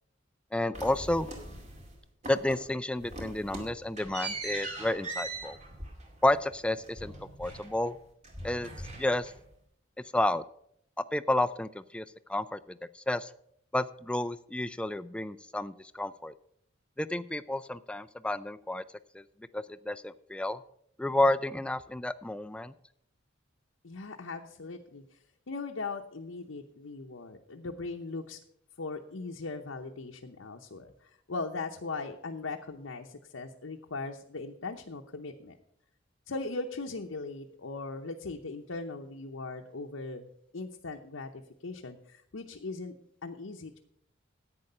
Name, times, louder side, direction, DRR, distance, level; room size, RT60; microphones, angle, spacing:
voice 1, 0.5-1.3 2.3-5.6 6.2-7.1 7.4-8.0 8.4-8.7 9.0-9.3 10.1-10.4 11.1-12.0 12.3-13.3 13.7-16.3 17.0-18.8 19.1-19.2 19.5-20.6 21.0-22.7, left 1 dB, 5° left, 13 dB, 0.3 m, -30 dB
sound 1, 0.7-1.9 2.2-2.7 3.0-8.0 8.2-9.5, right 2 dB, 35° right, 2.2 m, -41 dB
voice 2, 23.8-25.2 25.5-28.4 28.8-35.6 36.3-41.3 41.6-42.9 43.2-43.8, left 3 dB, 80° left, 2 dB, 0.8 m, -39 dB
10.5 x 8.8 x 5.5 m, 0.71 s
head